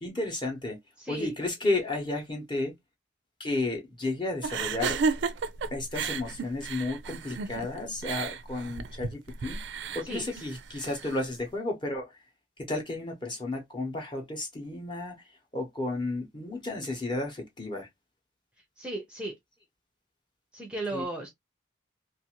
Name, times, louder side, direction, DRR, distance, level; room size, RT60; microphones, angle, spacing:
voice 1, 0.0-0.8 1.1-2.7 3.4-5.0 5.7-9.6 9.9-12.1 12.7-15.1 15.5-17.9 20.9-21.1, left 2 dB, 25° left, 0.8 m, -32 dB
voice 2, 1.0-1.3 10.0-10.4 18.8-19.3 20.5-21.3, right 2 dB, 5° right, 0.5 m, -35 dB
sound 1, 4.4-11.3, right 5 dB, 60° right, 0.3 m, -33 dB
2.5 x 2.4 x 2.9 m
head